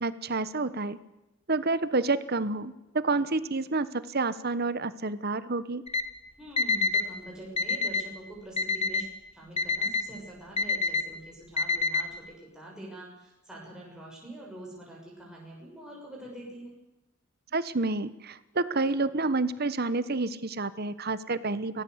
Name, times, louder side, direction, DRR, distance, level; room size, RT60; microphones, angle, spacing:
voice 1, 0.0-1.0 1.5-5.8 17.5-21.8, right 3 dB, 50° right, 14 dB, 1.2 m, -29 dB
Alarm, 5.9-6.0 6.6-7.0 7.6-8.0 8.6-9.0 9.6-10.0 10.6-11.0 11.6-12.0, left 4 dB, 30° left, 1.6 m, -27 dB
voice 2, 6.4-9.1 9.3-12.2 12.5-16.8, right 1 dB, 5° right, -4 dB, 6.4 m, -44 dB
24.0 x 17.5 x 8.1 m, 0.97 s
head